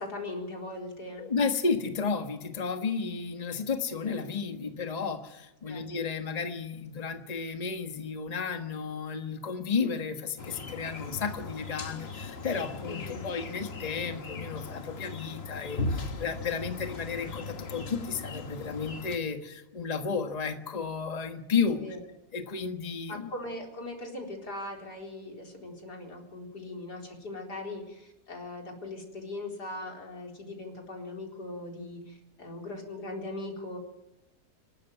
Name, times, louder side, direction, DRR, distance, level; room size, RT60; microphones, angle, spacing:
voice 1, 0.0-1.3 5.7-5.8 12.9-13.3 21.7-22.0 23.1-33.8, left 2 dB, 90° left, 1 dB, 4.7 m, -40 dB
voice 2, 1.2-21.8 22.3-23.3, left 5 dB, 25° left, 6 dB, 1.4 m, -32 dB
sound 1, 10.4-19.2, left 3 dB, 40° left, 1.5 m, -38 dB
26.0 x 13.0 x 9.4 m, 0.93 s
omnidirectional pair, 1.7 m